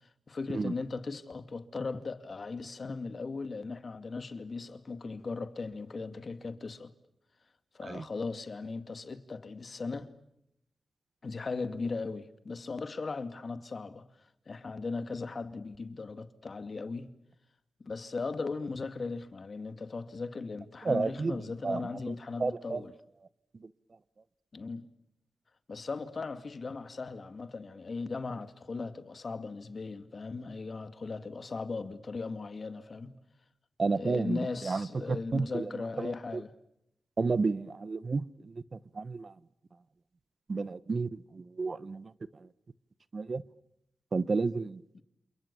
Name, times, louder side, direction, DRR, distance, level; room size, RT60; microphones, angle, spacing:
voice 1, 0.3-6.9 7.7-10.1 11.2-14.1 14.5-17.1 17.8-22.9 24.5-24.9 25.7-33.1 33.9-36.5 44.9-45.0, left 4 dB, 55° left, 2.3 m, -38 dB
voice 2, 20.8-22.1 22.4-22.8 23.6-23.7 33.8-35.7 36.0-36.4 37.2-39.3 40.5-42.5 43.1-43.4 44.1-44.8, right 4 dB, 55° right, 1.1 m, -32 dB
28.5 x 28.0 x 7.0 m
cardioid pair, 50°, 0 cm